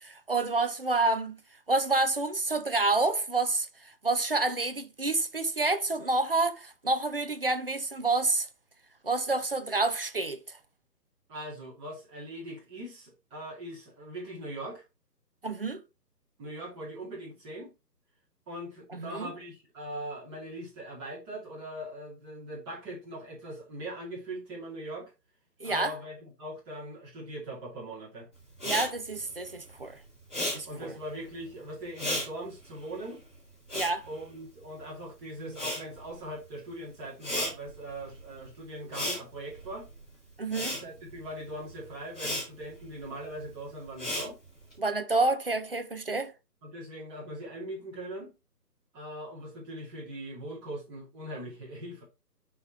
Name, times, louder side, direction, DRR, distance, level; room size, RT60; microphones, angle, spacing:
voice 1, 0.0-1.4 1.7-8.5 9.0-10.6 15.4-15.8 18.9-19.3 25.6-25.9 28.6-30.0 30.4-30.9 33.7-34.1 35.4-35.5 40.4-40.8 44.8-46.3, right 3 dB, 35° right, 0.5 m, -28 dB
voice 2, 11.3-14.8 16.4-17.7 18.5-25.1 25.6-28.3 30.6-33.2 34.1-39.9 40.7-44.4 46.6-48.3 48.9-52.0, right 1 dB, 15° right, 2.3 m, -41 dB
Respiratory sounds, 28.5-35.0 35.3-44.7, left 1 dB, 5° left, 0.8 m, -36 dB
6.2 x 3.6 x 4.6 m
figure-of-eight pair, 150°, 49 cm